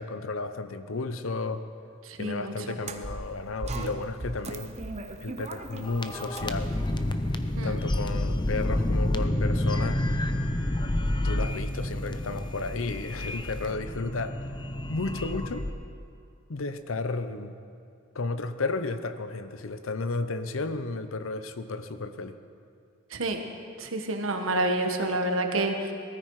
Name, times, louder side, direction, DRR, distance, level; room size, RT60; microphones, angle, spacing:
voice 1, 0.0-1.7 2.2-4.7 5.2-6.8 7.6-10.1 11.2-14.4 14.9-15.7 16.5-17.6 18.1-22.3, left 3 dB, 80° left, 11 dB, 0.8 m, -33 dB
voice 2, 2.0-2.8 7.6-7.8 23.1-23.4 23.8-25.9, right 2 dB, 80° right, 4 dB, 1.4 m, -28 dB
sound 1, 2.8-8.0, right 2 dB, 35° right, 0.8 m, -39 dB
sound 2, 5.8-15.7, left 1 dB, 25° left, 0.6 m, -29 dB
19.0 x 14.0 x 4.8 m, 2.4 s
head